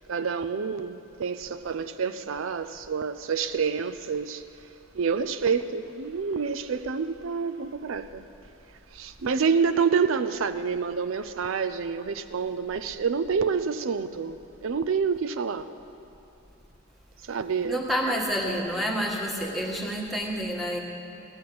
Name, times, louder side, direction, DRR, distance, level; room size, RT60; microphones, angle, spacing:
voice 1, 0.0-4.4 4.9-8.2 8.9-15.7 17.2-18.2, right 5 dB, 75° right, 11 dB, 0.5 m, -28 dB
voice 2, 17.6-20.8, equal, ahead, -1 dB, 1.4 m, -28 dB
16.0 x 10.5 x 7.7 m, 2.7 s
head